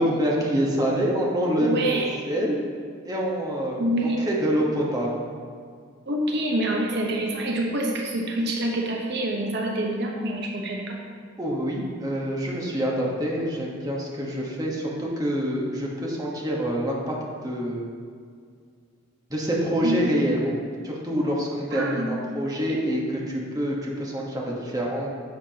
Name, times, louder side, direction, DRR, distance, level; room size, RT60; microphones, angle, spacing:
voice 1, 0.0-2.6 3.0-5.2 11.4-17.2 17.4-17.8 19.3-20.6 20.8-25.1, equal, 20° right, -3 dB, 1.2 m, -26 dB
voice 2, 1.5-2.1 3.8-4.2 6.1-11.0 19.8-20.2 21.7-22.2, right 1 dB, 60° right, 0 dB, 0.9 m, -26 dB
10.5 x 6.9 x 2.9 m, 2.1 s
head